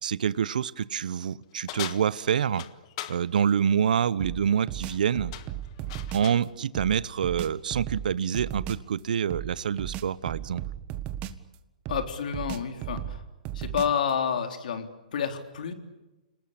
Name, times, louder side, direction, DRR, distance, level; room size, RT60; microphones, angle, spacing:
voice 1, 0.0-2.6 3.1-5.3 6.1-10.6, right 8 dB, 70° right, 18 dB, 0.9 m, -26 dB
sound 1, 1.7-3.2 4.7-5.0 5.3-6.5, left 14 dB, 45° left, 1.5 m, -39 dB
sound 2, 4.2-6.3 6.7-8.9 9.3-11.5 11.8-14.1, right 11 dB, 30° right, 1.6 m, -36 dB
voice 2, 11.9-13.2 13.5-15.7, left 7 dB, 65° left, 6 dB, 3.6 m, -29 dB
29.5 x 19.5 x 8.7 m, 1.1 s
hypercardioid pair, 145°, 5 cm